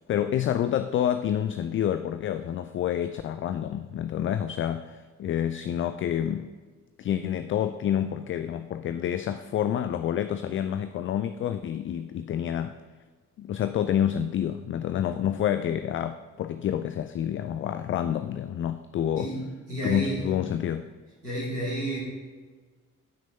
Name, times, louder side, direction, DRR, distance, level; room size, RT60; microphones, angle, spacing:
voice 1, 0.1-6.5 7.0-12.7 13.4-19.3 19.8-20.9, left 10 dB, 30° left, 10 dB, 0.4 m, -28 dB
voice 2, 19.1-20.3 21.2-22.0, right 1 dB, 85° right, -9 dB, 3.1 m, -31 dB
14.5 x 6.2 x 4.2 m, 1.4 s
figure-of-eight pair, 45°, 45 cm